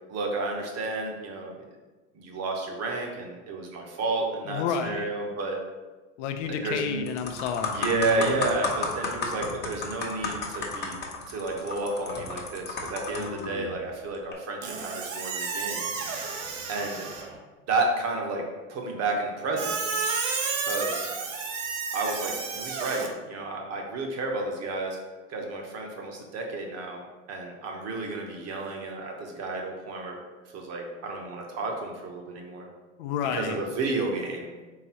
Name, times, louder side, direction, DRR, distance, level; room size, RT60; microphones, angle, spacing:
voice 1, 0.1-1.6 2.1-5.6 6.5-7.1 7.7-11.0 11.3-15.9 16.1-16.3 16.7-17.1 17.7-18.4 18.7-19.8 20.6-21.1 21.9-25.0 25.3-27.0 27.3-30.1 30.5-32.7 33.3-34.6, right 3 dB, 40° right, 1 dB, 1.0 m, -31 dB
voice 2, 4.5-5.1 6.2-8.4 13.1-13.8 33.0-33.6, left 7 dB, 70° left, 6 dB, 0.6 m, -31 dB
sound 1, 6.4-6.7 7.1-13.5 14.1-14.3, left 4 dB, 25° left, 0.9 m, -32 dB
Squeak, 14.6-17.4 19.6-23.1, right 4 dB, 75° right, 0.8 m, -31 dB
3.9 x 3.6 x 2.9 m, 1.2 s
hypercardioid pair, 95°, 38 cm